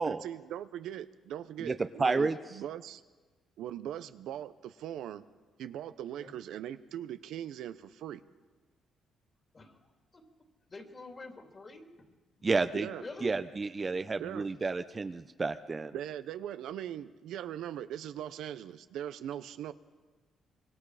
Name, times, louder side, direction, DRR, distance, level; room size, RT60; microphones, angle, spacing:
voice 1, 0.0-3.0 3.6-5.2 5.6-8.2 12.7-13.0 14.2-14.5 15.9-19.7, right 11 dB, 80° right, 11 dB, 0.7 m, -40 dB
voice 2, 2.0-2.4 12.4-12.9 13.2-15.9, right 4 dB, 30° right, 10 dB, 0.7 m, -30 dB
voice 3, 9.5-9.9 10.1-12.1 13.0-13.4 13.8-13.9, left 3 dB, 35° left, 3 dB, 3.0 m, -48 dB
25.5 x 22.5 x 4.9 m, 1.3 s
cardioid pair, 90°, 0 cm